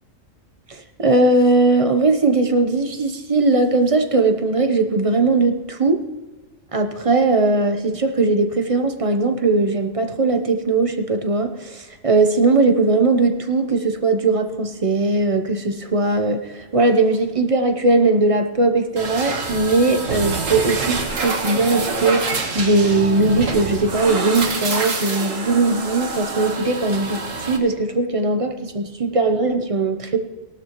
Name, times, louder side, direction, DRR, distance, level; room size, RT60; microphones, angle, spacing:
voice 1, 0.7-6.1 6.7-30.2, right 3 dB, 30° right, 6 dB, 0.9 m, -19 dB
die cut, 19.0-27.6, right 4 dB, 75° right, 1.9 m, -26 dB
18.0 x 12.5 x 3.1 m, 1.2 s
omnidirectional pair, 1.4 m